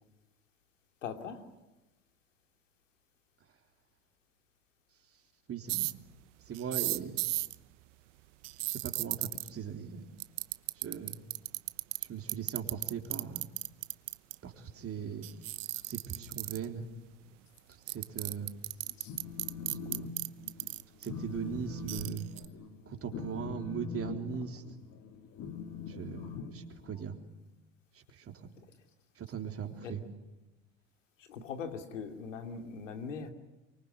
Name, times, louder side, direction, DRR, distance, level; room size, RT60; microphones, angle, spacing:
voice 1, 1.0-1.5 19.0-19.2 29.6-30.0 31.2-33.3, left 6 dB, 90° left, 6 dB, 2.8 m, -41 dB
voice 2, 5.5-5.9 6.5-7.2 8.7-10.1 10.8-11.2 12.1-13.5 14.4-15.3 15.9-16.8 17.9-18.5 21.0-22.3 22.9-24.6 25.9-27.2 29.2-30.0, right 7 dB, 40° right, 4 dB, 3.6 m, -39 dB
sound 1, 5.7-5.9 6.5-7.6 8.4-9.5 10.2-12.0 12.3-14.4 15.2-16.7 17.6-17.7 17.9-21.1 21.9-22.5, right 20 dB, 75° right, 1.0 m, -34 dB
Telephone, 18.9-20.1 20.4-20.7 21.1-27.2, left 5 dB, 50° left, 2.8 m, -42 dB
24.5 x 24.0 x 9.6 m, 1.0 s
hypercardioid pair, 85°, 37 cm